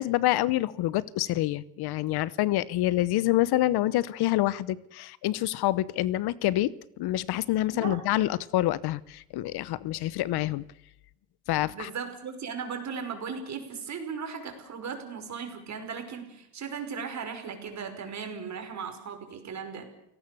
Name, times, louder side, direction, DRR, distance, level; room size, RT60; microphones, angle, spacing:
voice 1, 0.0-10.6 11.5-11.9, left 15 dB, 60° left, 19 dB, 0.9 m, -27 dB
voice 2, 11.7-19.9, right 6 dB, 40° right, 6 dB, 5.7 m, -37 dB
29.5 x 18.0 x 6.9 m, 0.82 s
cardioid pair, 110°, 44 cm